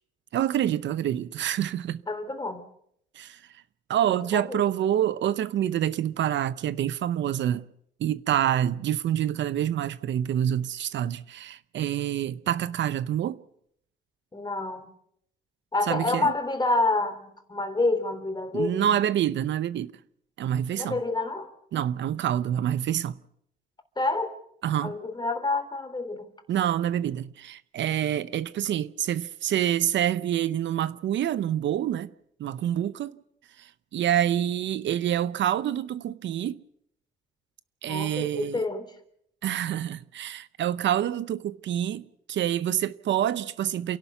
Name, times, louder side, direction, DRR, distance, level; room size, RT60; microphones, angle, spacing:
voice 1, 0.3-2.0 3.2-3.4 3.9-7.7 8.0-13.4 15.9-16.3 18.5-19.9 20.4-21.0 21.7-23.2 24.6-24.9 26.5-32.1 32.4-33.1 33.6-36.6 37.8-38.6 39.4-44.0, right 11 dB, 70° right, 0.7 m, -27 dB
voice 2, 2.1-2.6 4.1-4.6 14.3-14.9 15.7-19.0 20.8-21.5 24.0-24.3 24.8-26.3 37.8-39.0, left 2 dB, 20° left, 3.5 m, -28 dB
28.5 x 11.5 x 8.0 m
cardioid pair, 90°, 20 cm